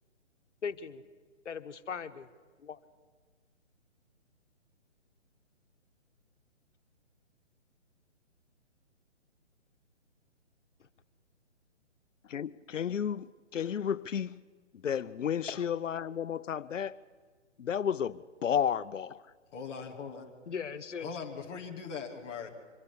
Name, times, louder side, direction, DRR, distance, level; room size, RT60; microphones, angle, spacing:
voice 1, 0.6-1.0 1.4-2.3 2.6-2.8 10.8-10.9 15.5-15.7 20.5-21.2, left 6 dB, 75° left, 1.3 m, -39 dB
voice 2, 12.3-14.4 14.8-17.0 17.6-19.2, left 8 dB, 90° left, 0.6 m, -32 dB
voice 3, 19.5-20.3 21.0-22.5, left 5 dB, 10° left, 0.7 m, -40 dB
24.5 x 10.5 x 10.0 m
hypercardioid pair, 160°, 37 cm